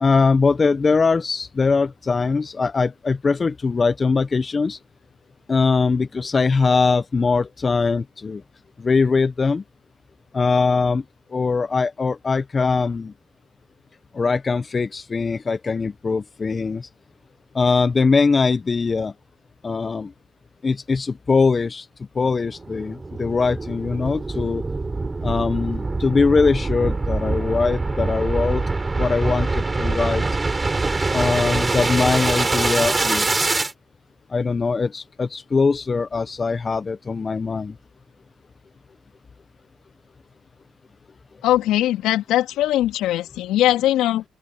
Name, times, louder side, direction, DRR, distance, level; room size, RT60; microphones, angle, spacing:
voice 1, 0.0-4.8 5.5-8.4 8.8-9.6 10.3-11.0 11.3-13.1 14.1-16.9 17.5-19.1 19.6-20.1 20.6-21.9 22.1-24.6 25.2-28.6 29.0-30.2 31.1-33.7 34.3-37.7, left 4 dB, 35° left, 0.9 m, -21 dB
sound 1, 22.2-33.7, right 3 dB, 25° right, 6.2 m, -24 dB
voice 2, 41.4-44.2, left 13 dB, 80° left, 3.1 m, -20 dB
open air
supercardioid pair, 70°, 0 cm